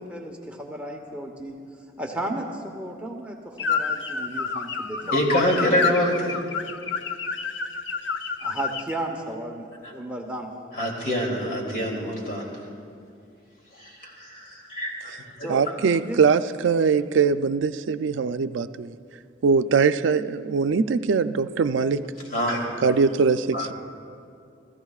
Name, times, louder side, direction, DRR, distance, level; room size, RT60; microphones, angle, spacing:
voice 1, 0.0-1.6 2.0-5.2 8.4-10.5 15.4-16.2, right 1 dB, 5° right, 1 dB, 0.9 m, -34 dB
sound 1, 3.6-8.9, left 5 dB, 75° left, 0.7 m, -29 dB
voice 2, 5.1-6.4 9.8-9.9 10.7-12.5 13.8-15.1 15.4-15.5 22.3-22.6 23.5-23.7, equal, 50° left, -1 dB, 2.8 m, -25 dB
voice 3, 15.5-19.0 19.4-22.1 22.8-23.7, right 5 dB, 85° right, 11 dB, 0.4 m, -22 dB
29.0 x 14.5 x 2.4 m, 2.4 s
head